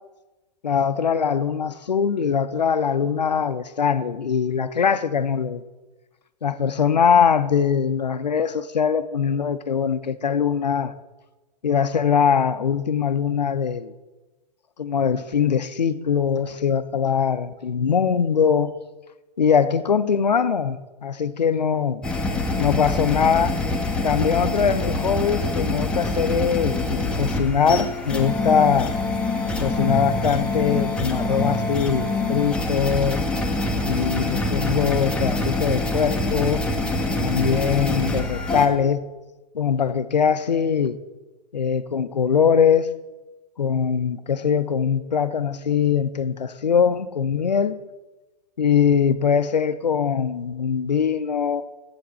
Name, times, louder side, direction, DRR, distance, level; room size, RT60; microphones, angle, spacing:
voice 1, 0.6-5.6 6.4-10.9 11.6-13.9 14.8-18.7 19.4-22.0 22.6-23.6 24.0-28.9 29.6-33.2 33.8-36.7 37.2-39.0 39.5-41.0 41.5-42.9 43.6-47.8 48.6-51.7, left 7 dB, 80° left, 0.6 m, -22 dB
sound 1, 22.0-38.7, left 2 dB, 5° left, 0.9 m, -25 dB
11.5 x 7.9 x 4.3 m
figure-of-eight pair, 105°, 21 cm